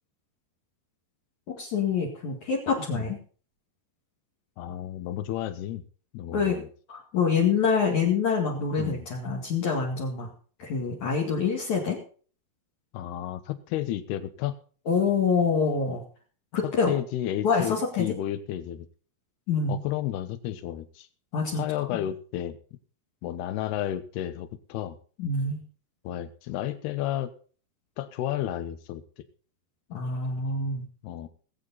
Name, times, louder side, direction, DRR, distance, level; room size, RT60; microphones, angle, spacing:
voice 1, 1.5-3.2 6.3-6.6 6.9-10.3 10.6-12.0 14.9-16.0 16.5-16.9 17.4-18.1 19.5-19.8 21.3-21.9 25.2-25.6 29.9-30.8, left 5 dB, 50° left, -1 dB, 3.1 m, -26 dB
voice 2, 4.6-5.8 6.1-6.7 8.8-9.1 12.9-14.6 16.6-18.9 19.7-21.1 21.5-22.6 23.2-25.0 26.0-27.3 28.0-29.0 31.0-31.3, left 12 dB, 75° left, 13 dB, 3.0 m, -32 dB
21.5 x 8.6 x 4.0 m, 0.41 s
omnidirectional pair, 4.8 m